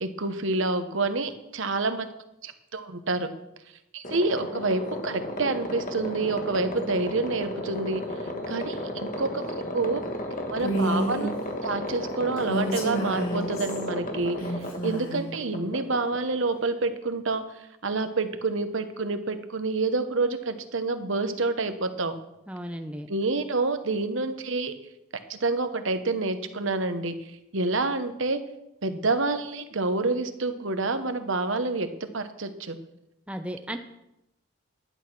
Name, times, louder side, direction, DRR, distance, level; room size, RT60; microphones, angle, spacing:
voice 1, 0.0-2.1 2.4-3.3 3.9-8.0 8.5-9.4 9.7-10.0 10.5-11.3 11.6-14.4 14.8-17.4 17.8-22.1 23.1-24.7 25.3-27.2 27.5-28.4 28.8-32.8, right 3 dB, 70° right, 9 dB, 1.0 m, -28 dB
sound 1, 4.0-16.7, left 1 dB, 40° left, 1.5 m, -34 dB
Female speech woman speaking, 10.6-11.3 12.4-13.8 14.4-15.3, equal, 85° left, 3.9 m, -29 dB
voice 2, 22.5-23.1 33.3-33.8, equal, 5° right, 6 dB, 0.7 m, -35 dB
11.0 x 8.7 x 6.0 m, 0.86 s
head